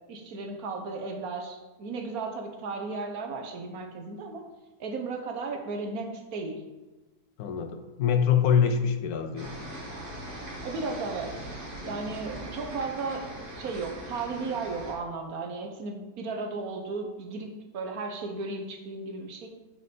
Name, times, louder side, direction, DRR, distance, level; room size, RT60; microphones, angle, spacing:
voice 1, 0.1-4.4 4.8-6.6 10.6-11.3 11.8-13.3 13.5-19.5, right 3 dB, 70° right, 3 dB, 1.4 m, -35 dB
voice 2, 7.4-9.7, left 7 dB, 80° left, 8 dB, 1.2 m, -25 dB
sound 1, 9.4-14.9, right 1 dB, 35° right, 1.5 m, -40 dB
6.6 x 6.2 x 4.4 m, 1.1 s
omnidirectional pair, 1.6 m